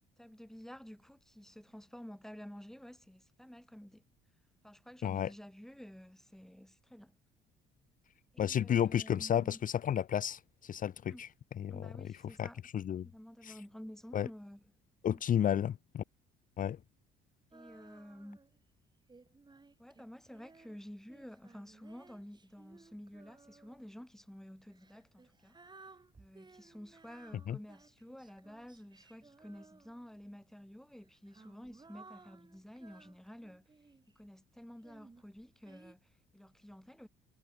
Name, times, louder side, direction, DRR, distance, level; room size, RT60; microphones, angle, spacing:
voice 1, 0.2-4.0 4.6-7.1 8.3-9.6 11.1-11.2 11.7-12.6 13.0-14.6 15.1-15.2 17.5-18.4 19.8-25.6 26.2-33.7 34.1-37.1, equal, ahead, 3.6 m, -51 dB
voice 2, 8.4-11.3 11.6-11.8 12.4-13.1 13.4-13.6 14.1-14.3 15.0-16.0 16.6-16.8 27.5-27.6, left 9 dB, 50° left, 0.9 m, -32 dB
Female singing, 17.5-18.6 19.1-23.9 24.7-30.2 31.0-34.2 34.8-36.0, right 3 dB, 25° right, 4.8 m, -59 dB
supercardioid pair, 65°, 18 cm